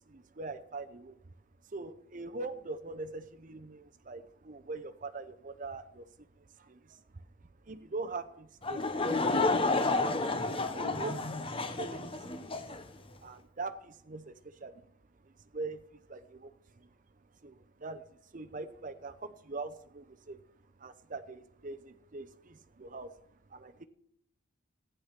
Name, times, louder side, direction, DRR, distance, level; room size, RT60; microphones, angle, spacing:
voice 1, 0.1-1.2 1.7-6.1 6.6-7.0 7.7-9.2 9.5-10.1 10.8-11.5 11.8-12.1 12.4-12.6 13.2-14.9 15.2-16.9 17.4-18.0 18.3-20.4 20.8-23.1 23.5-23.8, right 3 dB, 40° right, 9 dB, 0.7 m, -43 dB
Laughter / Crowd, 8.6-12.8, left 3 dB, 25° left, 0.9 m, -30 dB
15.0 x 10.0 x 5.8 m, 0.72 s
head